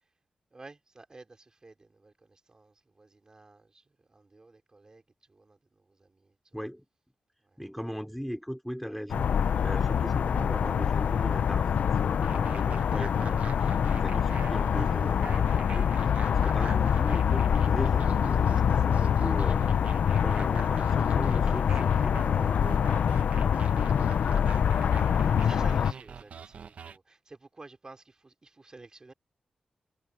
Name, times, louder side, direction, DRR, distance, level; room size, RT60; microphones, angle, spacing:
voice 1, 0.5-6.6 7.4-7.6 24.4-24.6 24.9-29.1, right 3 dB, 30° right, 3.5 m, -52 dB
voice 2, 6.5-6.9 7.6-9.3 9.6-19.6 20.1-23.0, equal, ahead, 3.9 m, -38 dB
sound 1, 9.1-25.9, left 8 dB, 80° left, 0.6 m, -25 dB
sound 2, 12.2-27.0, right 6 dB, 70° right, 1.2 m, -45 dB
wide cardioid pair, 110°, 2 cm